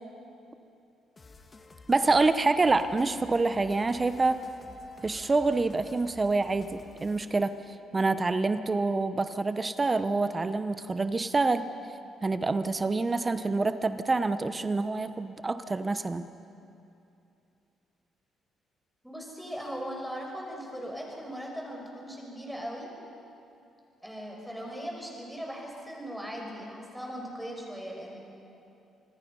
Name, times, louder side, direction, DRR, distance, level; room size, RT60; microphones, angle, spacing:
sound 1, 1.2-7.4, left 3 dB, 30° left, 1.5 m, -52 dB
voice 1, 1.9-4.4 5.0-11.7 12.2-16.3, right 3 dB, 25° right, 11 dB, 0.8 m, -27 dB
voice 2, 19.0-22.9 24.0-28.2, equal, 5° right, -1 dB, 5.8 m, -39 dB
27.0 x 20.0 x 5.5 m, 2.7 s
cardioid pair, 90°, 0 cm